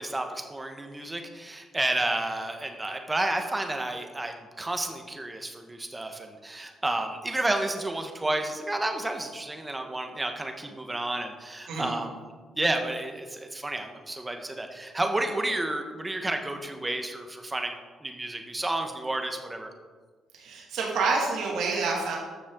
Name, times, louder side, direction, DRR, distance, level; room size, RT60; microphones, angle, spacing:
voice 1, 0.0-19.7, right 2 dB, 15° right, 5 dB, 1.3 m, -31 dB
voice 2, 20.4-22.2, right 4 dB, 80° right, -2 dB, 2.5 m, -28 dB
13.5 x 6.1 x 3.9 m, 1.4 s
cardioid pair, 90°, 0 cm